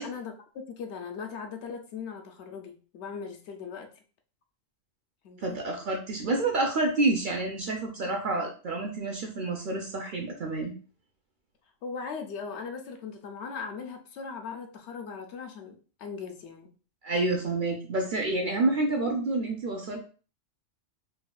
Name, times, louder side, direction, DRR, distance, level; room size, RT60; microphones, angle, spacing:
voice 1, 0.0-3.9 5.2-5.6 11.8-16.7 18.8-18.9, left 5 dB, 70° left, 4 dB, 0.8 m, -39 dB
voice 2, 5.4-10.7 17.0-20.0, right 2 dB, 55° right, 2 dB, 0.6 m, -28 dB
4.1 x 2.3 x 2.2 m, 0.37 s
omnidirectional pair, 1.2 m